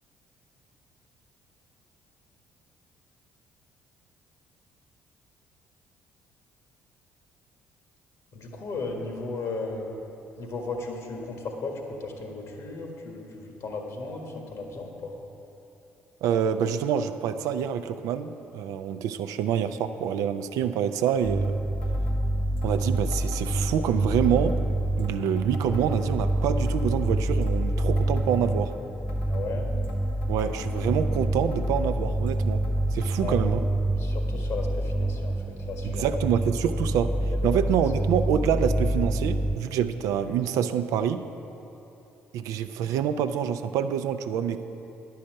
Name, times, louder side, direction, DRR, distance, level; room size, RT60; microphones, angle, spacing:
voice 1, 8.3-10.0 10.4-15.2 29.3-29.6 33.2-33.4 34.0-35.3 35.7-36.1 37.4-37.5, left 3 dB, 60° left, 2 dB, 1.7 m, -35 dB
voice 2, 16.2-21.5 22.6-24.6 25.0-28.7 30.3-32.6 32.9-33.6 35.8-37.1 37.4-41.2 42.3-44.6, right 8 dB, 70° right, 9 dB, 0.4 m, -26 dB
sound 1, 21.1-21.2 21.4-21.5 21.8-22.2 22.6-23.9 24.2-24.6 25.0-26.4 26.7-27.0 27.4-28.8 29.1-29.5 29.8-31.2 31.5-31.9 32.3-32.7 33.0-33.1 33.4-33.5 34.3-34.4 35.1-35.2, left 2 dB, 85° left, 1.2 m, -47 dB
sound 2, 21.2-39.6, right 1 dB, 5° left, 0.4 m, -27 dB
10.5 x 5.6 x 7.6 m, 2.9 s
hypercardioid pair, 50°, 6 cm